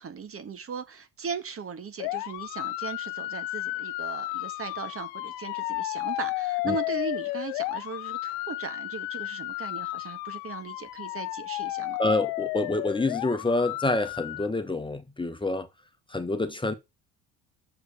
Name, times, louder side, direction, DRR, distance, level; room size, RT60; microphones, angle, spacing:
voice 1, 0.0-12.0, right 6 dB, 40° right, 1.7 m, -38 dB
sound 1, 2.0-14.5, left 19 dB, 75° left, 0.7 m, -33 dB
voice 2, 12.0-15.7 16.1-16.7, left 2 dB, 15° left, 1.4 m, -27 dB
7.1 x 4.4 x 6.8 m
hypercardioid pair, 65°, 36 cm